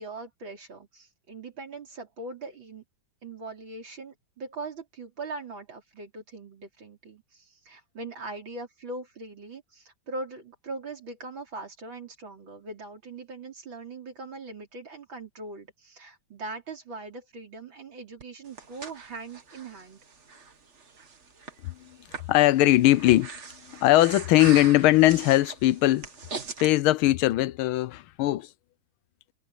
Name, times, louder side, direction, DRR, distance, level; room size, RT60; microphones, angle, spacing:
voice 1, 0.0-2.8 3.2-20.0, right 3 dB, 70° right, 4.9 m, -41 dB
Breathing, 18.2-26.7, right 4 dB, 35° right, 1.8 m, -41 dB
voice 2, 22.3-23.3 23.8-26.1 26.6-28.5, left 16 dB, 90° left, 1.5 m, -20 dB
omnidirectional pair, 2.2 m